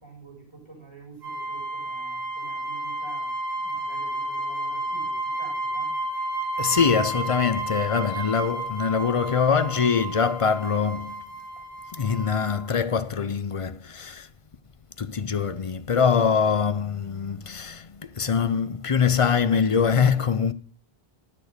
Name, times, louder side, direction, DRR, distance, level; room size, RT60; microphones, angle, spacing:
voice 1, 0.0-5.9, right 3 dB, 25° right, 4.2 m, -47 dB
sound 1, 1.2-12.7, right 2 dB, 75° right, 4.8 m, -31 dB
voice 2, 6.6-11.2 11.9-14.3 15.0-20.5, left 6 dB, 40° left, 0.6 m, -23 dB
12.5 x 6.5 x 6.5 m
omnidirectional pair, 1.0 m